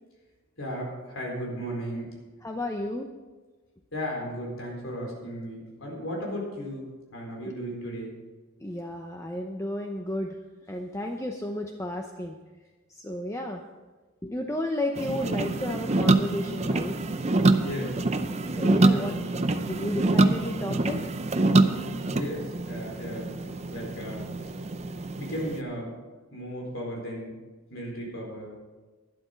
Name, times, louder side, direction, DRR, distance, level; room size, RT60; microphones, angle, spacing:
voice 1, 0.6-2.2 3.9-8.2 17.6-18.0 18.9-19.1 22.1-23.3 23.7-24.3 25.2-26.0 26.3-27.4 27.7-28.5, equal, 65° left, -1 dB, 4.2 m, -35 dB
voice 2, 2.4-3.1 8.6-10.4 10.7-12.4 12.9-13.6 14.2-17.0 18.6-21.0, left 1 dB, 15° left, 3 dB, 0.6 m, -32 dB
sound 1, 15.0-25.6, right 2 dB, 30° right, 0.6 m, -25 dB
12.0 x 11.0 x 5.1 m, 1.3 s
head